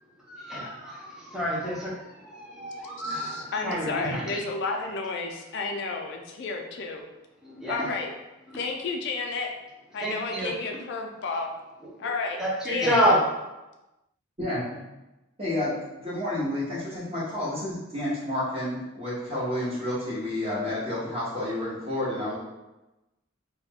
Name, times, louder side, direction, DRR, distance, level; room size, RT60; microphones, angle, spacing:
voice 1, 0.3-4.4 7.4-7.9 10.0-10.5 12.4-13.2, equal, 5° right, -7 dB, 0.5 m, -28 dB
voice 2, 3.0-7.0 7.7-8.1 8.5-9.5 9.9-11.5 12.0-12.4 12.6-13.0, left 4 dB, 55° left, 2 dB, 0.4 m, -31 dB
voice 3, 14.4-14.8 15.4-22.4, left 1 dB, 30° right, -7 dB, 0.8 m, -30 dB
2.3 x 2.2 x 3.4 m, 1.0 s
head